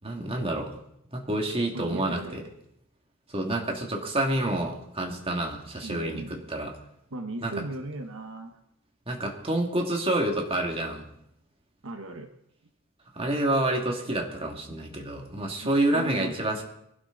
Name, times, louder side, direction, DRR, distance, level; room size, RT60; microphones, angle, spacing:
voice 1, 0.0-0.7 1.1-2.4 3.3-6.7 7.4-7.5 9.1-11.1 13.1-16.6, right 1 dB, 25° right, 1 dB, 2.3 m, -28 dB
voice 2, 1.7-2.5 5.8-6.5 7.1-8.6 11.8-12.3 15.6-16.6, right 1 dB, 60° right, 5 dB, 1.2 m, -37 dB
23.0 x 12.0 x 4.0 m, 0.79 s
head